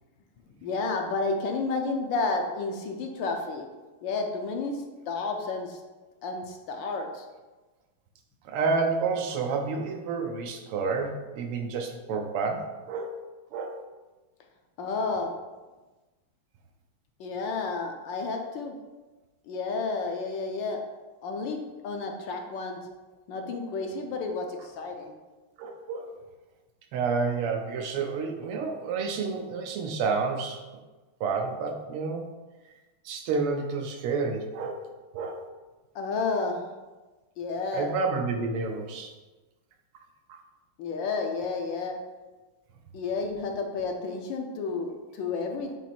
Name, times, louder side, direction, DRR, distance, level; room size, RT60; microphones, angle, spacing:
voice 1, 0.6-3.6 4.0-5.8 6.2-7.2 14.8-15.3 17.2-18.8 19.5-20.8 21.2-22.8 23.3-25.1 35.9-36.7 37.4-37.9 40.8-42.0 42.9-45.8, left 4 dB, 70° left, 3 dB, 1.2 m, -31 dB
voice 2, 8.5-13.2 13.5-13.8 25.6-26.1 26.9-30.6 31.2-32.3 33.1-34.8 35.1-35.4 37.7-39.1 40.3-40.4, right 4 dB, 90° right, 3 dB, 1.7 m, -29 dB
7.4 x 3.1 x 4.2 m, 1.2 s
omnidirectional pair, 2.4 m